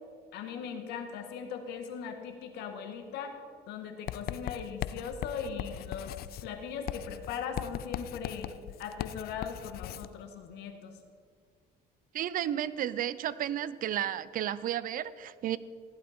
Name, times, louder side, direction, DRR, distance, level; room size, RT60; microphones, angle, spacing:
voice 1, 0.3-3.4 3.7-6.1 6.4-8.5 8.8-10.9, left 6 dB, 85° left, 6 dB, 1.6 m, -39 dB
Writing, 4.1-10.1, left 12 dB, 65° left, 0.5 m, -39 dB
voice 2, 12.1-15.6, right 11 dB, 55° right, 17 dB, 0.6 m, -32 dB
15.0 x 11.0 x 4.3 m, 2.1 s
cardioid pair, 110°, 17 cm